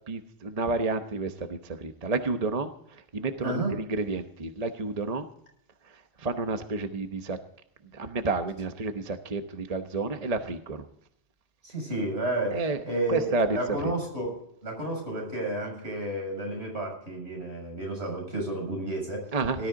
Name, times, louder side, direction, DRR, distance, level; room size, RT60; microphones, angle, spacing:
voice 1, 0.1-5.2 6.2-7.4 7.9-10.9 12.5-12.8 13.1-13.9 19.3-19.6, right 3 dB, 35° right, 7 dB, 1.0 m, -30 dB
voice 2, 3.4-3.8 11.6-14.4 14.6-19.3 19.6-19.7, right 1 dB, 85° right, 1 dB, 7.3 m, -31 dB
18.5 x 13.0 x 3.8 m, 0.70 s
omnidirectional pair, 1.1 m